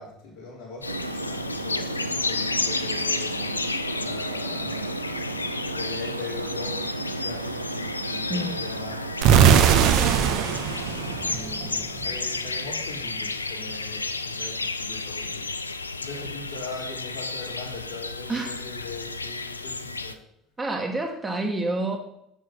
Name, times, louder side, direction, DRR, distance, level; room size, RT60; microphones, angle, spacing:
voice 1, 0.0-3.5 4.0-9.0 11.0-15.5 16.0-20.2, left 3 dB, 70° left, -5 dB, 3.8 m, -41 dB
sound 1, 0.8-20.1, left 3 dB, 85° left, 0.4 m, -32 dB
sound 2, 0.8-11.3, right 3 dB, 85° right, 0.4 m, -34 dB
voice 2, 8.3-8.6 18.3-18.5 20.6-22.0, right 2 dB, 15° right, 3 dB, 1.5 m, -28 dB
sound 3, 9.2-12.1, right 8 dB, 55° right, 0.8 m, -20 dB
7.3 x 6.6 x 5.8 m, 0.75 s
figure-of-eight pair, 65°, 0 cm